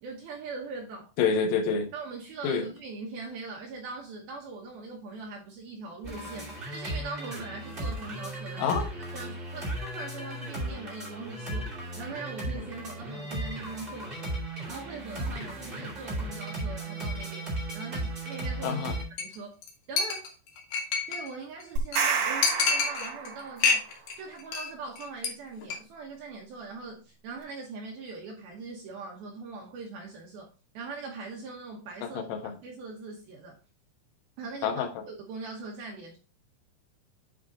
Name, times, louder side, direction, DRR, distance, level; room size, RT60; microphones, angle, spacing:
voice 1, 0.0-1.1 1.9-8.8 9.1-11.7 11.9-14.4 14.7-18.9 19.2-19.6 19.9-20.3 21.1-23.9 24.2-30.5 30.7-32.2 32.6-33.6 34.4-36.2, right 4 dB, 75° right, 2.3 m, -41 dB
voice 2, 1.2-1.9 2.4-2.7 8.6-8.9 18.6-18.9 32.0-32.5 34.6-34.9, left 6 dB, 90° left, 3.8 m, -27 dB
sound 1, 6.0-19.0, right 1 dB, 25° right, 1.2 m, -36 dB
Chink clink, 19.2-19.4 19.6-19.7 20.0-21.3 21.6-21.7 21.9-22.0 22.4-23.3 23.6-24.1 24.4-24.7 25.0-25.3 25.6-25.8, left 4 dB, 70° left, 2.2 m, -27 dB
sound 2, 21.8-23.7, right 6 dB, 55° right, 3.8 m, -29 dB
10.0 x 3.8 x 3.8 m
omnidirectional pair, 5.7 m